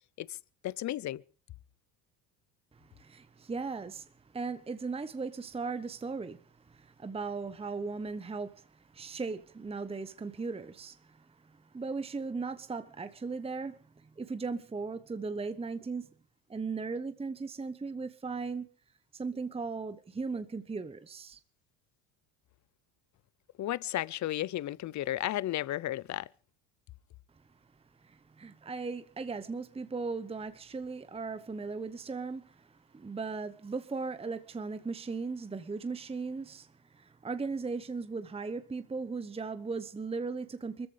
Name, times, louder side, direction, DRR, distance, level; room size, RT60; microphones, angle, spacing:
voice 1, 0.6-1.2 23.6-26.3, left 14 dB, 40° left, 0.6 m, -33 dB
voice 2, 2.7-16.1 16.5-18.7 19.1-21.4 28.0-40.9, right 4 dB, 15° right, 1.0 m, -38 dB
23.5 x 14.5 x 3.4 m
supercardioid pair, 90°, 45 cm